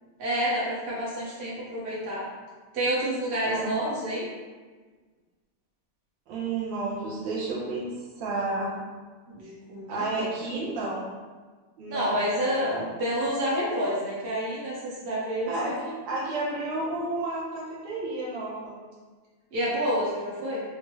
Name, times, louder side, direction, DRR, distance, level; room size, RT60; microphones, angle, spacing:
voice 1, 0.2-2.2 2.7-4.3 9.3-10.3 11.9-15.9 19.5-20.6, equal, 50° right, -7 dB, 0.7 m, -29 dB
voice 2, 6.3-7.9 8.1-8.7 9.9-11.1 11.8-12.9 15.5-15.7 16.1-18.7, right 2 dB, 70° right, -6 dB, 1.3 m, -31 dB
4.6 x 2.1 x 3.1 m, 1.4 s
omnidirectional pair, 2.4 m